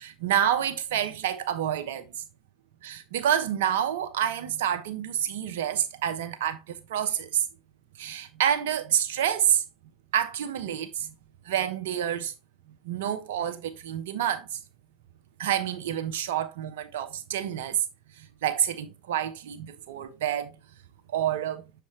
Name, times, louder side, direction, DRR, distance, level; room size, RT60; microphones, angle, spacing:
voice 1, 0.0-2.1 2.8-7.5 8.0-9.6 10.1-11.1 11.5-12.3 12.8-14.6 15.4-17.8 18.2-20.6 21.1-21.6, right 10 dB, 80° right, 0.9 m, -28 dB
6.8 x 4.9 x 3.1 m
hypercardioid pair, 80°, 0 cm